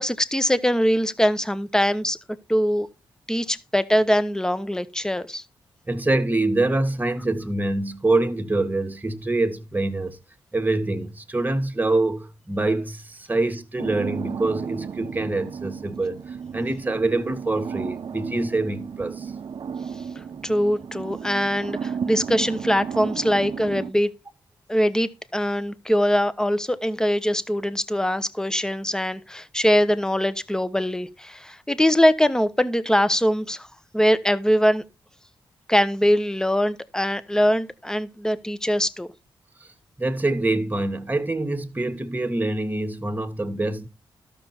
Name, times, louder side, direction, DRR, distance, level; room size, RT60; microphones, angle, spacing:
voice 1, 0.0-2.2 2.5-2.9 3.3-5.4 20.4-24.1 24.7-33.7 33.9-34.8 35.7-39.1, equal, 5° left, 1.1 m, -22 dB
voice 2, 5.9-10.2 10.5-19.3 39.6-39.7 40.0-43.9, right 2 dB, 20° right, 1.9 m, -25 dB
sound 1, 13.8-23.9, right 6 dB, 55° right, 0.6 m, -34 dB
12.5 x 6.9 x 4.4 m
cardioid pair, 55°, 9 cm